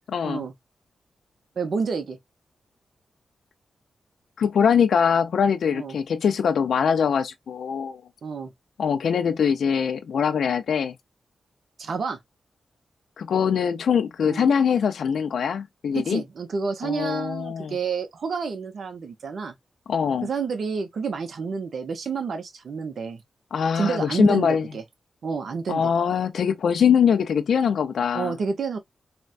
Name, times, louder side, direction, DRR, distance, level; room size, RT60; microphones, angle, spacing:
voice 1, 0.1-0.4 4.4-8.0 8.8-10.9 13.2-16.2 16.8-17.8 19.9-20.3 23.5-24.6 25.7-28.3, left 7 dB, 85° left, 0.4 m, -22 dB
voice 2, 1.6-2.2 5.7-6.0 8.2-8.5 11.8-12.2 14.3-14.5 15.9-19.5 20.2-23.2 23.8-24.8 25.2-25.9 28.1-28.8, right 5 dB, 70° right, 0.7 m, -29 dB
4.1 x 2.2 x 2.4 m
cardioid pair, 80°, 0 cm